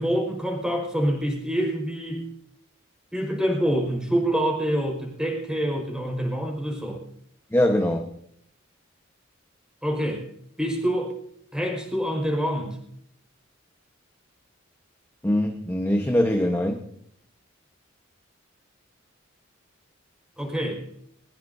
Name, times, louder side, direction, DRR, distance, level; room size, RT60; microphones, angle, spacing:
voice 1, 0.0-2.2 3.1-7.0 9.8-10.2 10.6-11.2 11.5-12.8 20.4-20.8, equal, 5° right, 1 dB, 5.1 m, -26 dB
voice 2, 7.5-8.1 15.2-16.9, left 1 dB, 10° left, 3 dB, 1.2 m, -22 dB
21.5 x 20.5 x 2.8 m, 0.69 s
head